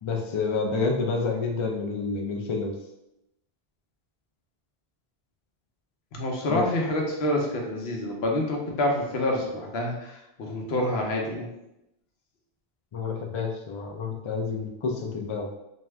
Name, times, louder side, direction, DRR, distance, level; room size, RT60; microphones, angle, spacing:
voice 1, 0.0-2.7 6.5-6.7 12.9-15.5, left 4 dB, 55° left, 2 dB, 0.3 m, -29 dB
voice 2, 6.1-11.5, left 1 dB, 85° left, 0 dB, 0.9 m, -27 dB
2.6 x 2.2 x 3.2 m, 0.88 s
omnidirectional pair, 1.0 m